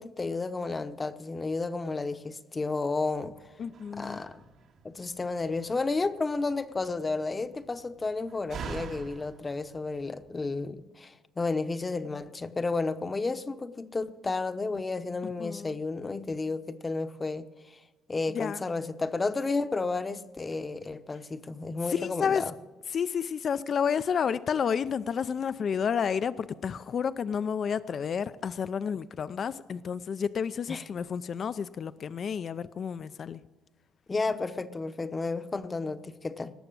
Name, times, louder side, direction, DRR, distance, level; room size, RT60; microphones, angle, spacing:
voice 1, 0.0-3.4 3.9-4.5 4.8-17.8 18.1-22.5 30.7-30.8 34.1-36.5, left 3 dB, 20° left, 11 dB, 0.9 m, -32 dB
Slam, 3.2-10.7, right 5 dB, 65° right, 1.8 m, -47 dB
voice 2, 3.6-4.2 15.2-15.8 18.3-18.6 21.9-22.4 22.9-33.4, left 7 dB, 45° left, 14 dB, 0.5 m, -30 dB
18.5 x 7.1 x 8.7 m, 1.2 s
cardioid pair, 105°, 0 cm